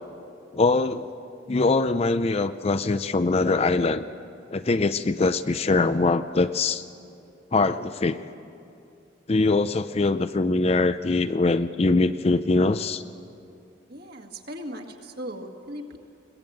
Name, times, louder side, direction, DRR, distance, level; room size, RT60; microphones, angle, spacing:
voice 1, 0.5-1.1 1.5-4.0 4.5-6.8 7.5-8.2 9.3-13.0, left 3 dB, 30° left, 12 dB, 0.4 m, -22 dB
voice 2, 13.9-16.0, equal, 50° right, 2 dB, 2.0 m, -38 dB
22.0 x 19.5 x 8.6 m, 2.6 s
head